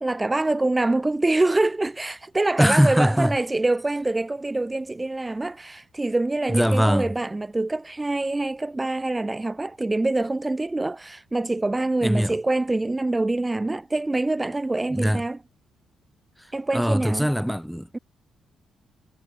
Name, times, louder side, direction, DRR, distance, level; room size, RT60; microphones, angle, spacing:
voice 1, 0.0-15.4 16.5-17.3 17.9-18.0, right 2 dB, 15° right, 1.4 m, -25 dB
voice 2, 2.6-3.4 6.5-7.1 12.0-12.4 14.9-15.2 16.7-17.9, equal, ahead, 2.0 m, -21 dB
cardioid pair, 95°, 0 cm